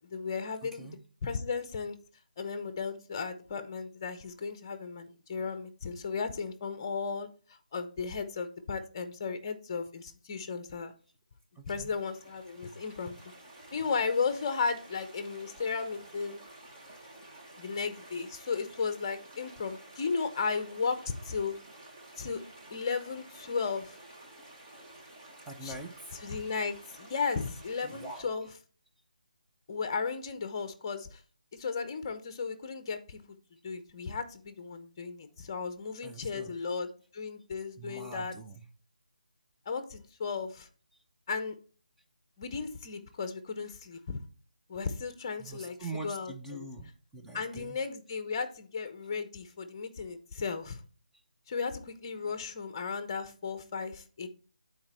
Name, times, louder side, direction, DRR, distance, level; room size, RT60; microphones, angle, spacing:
voice 1, 0.1-2.0 2.4-7.3 7.7-10.9 11.7-13.1 13.7-16.4 17.6-21.6 22.2-22.4 22.7-24.0 25.6-25.8 26.2-28.5 29.7-31.2 31.5-33.2 33.6-38.3 39.7-40.7 41.3-41.6 42.4-44.2 44.7-45.7 46.0-46.6 47.3-50.8 51.5-54.3, left 5 dB, 25° left, 10 dB, 0.8 m, -35 dB
voice 2, 0.6-1.0 11.6-12.0 25.5-26.1 27.8-28.5 36.0-36.6 37.8-38.7 45.4-47.8, right 2 dB, 5° right, 0 dB, 0.5 m, -44 dB
sound 1, 11.8-28.2, right 1 dB, 20° right, 1.2 m, -52 dB
8.6 x 4.2 x 4.4 m, 0.39 s
figure-of-eight pair, 165°, 4 cm